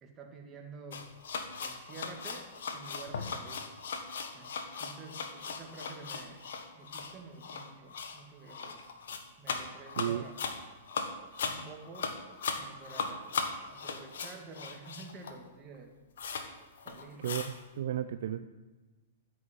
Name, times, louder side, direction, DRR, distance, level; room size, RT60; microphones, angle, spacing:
voice 1, 0.0-1.1 1.6-3.8 4.3-4.5 4.8-6.4 6.7-8.8 9.4-10.3 11.4-12.2 12.6-13.3 13.7-15.9 16.8-17.3, right 4 dB, 25° right, 2 dB, 2.4 m, -49 dB
sound 1, 0.9-15.5 15.7-15.8 16.2-16.5 16.8-17.6, left 5 dB, 60° left, 1.5 m, -38 dB
voice 2, 17.2-18.5, right 10 dB, 55° right, 10 dB, 0.5 m, -34 dB
14.0 x 6.3 x 7.8 m, 1.2 s
figure-of-eight pair, 105°, 0 cm